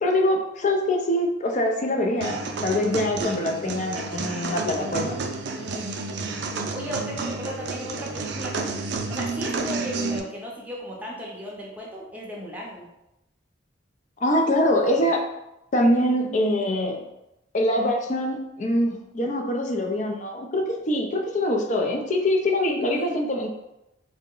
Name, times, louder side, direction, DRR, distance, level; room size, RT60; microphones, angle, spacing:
voice 1, 0.0-5.2 14.2-15.2 15.7-17.0 17.5-23.5, left 1 dB, 40° left, 3 dB, 0.5 m, -24 dB
sound 1, 2.2-10.2, right 3 dB, 60° right, 0.4 m, -30 dB
voice 2, 5.5-6.0 6.7-12.9 22.8-23.1, equal, 10° right, -3 dB, 0.6 m, -36 dB
3.8 x 2.1 x 3.7 m, 0.90 s
head